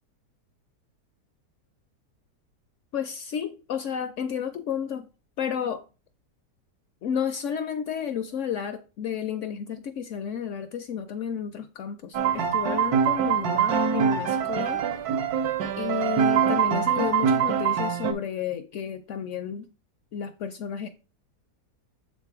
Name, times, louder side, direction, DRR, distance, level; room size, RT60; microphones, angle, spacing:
voice 1, 2.9-5.1 5.4-5.8 7.0-14.9 15.8-19.7 20.1-20.9, left 8 dB, 70° left, 0.7 m, -32 dB
sound 1, 12.1-18.1, right 7 dB, 75° right, 1.3 m, -24 dB
7.2 x 3.2 x 4.7 m
omnidirectional pair, 1.7 m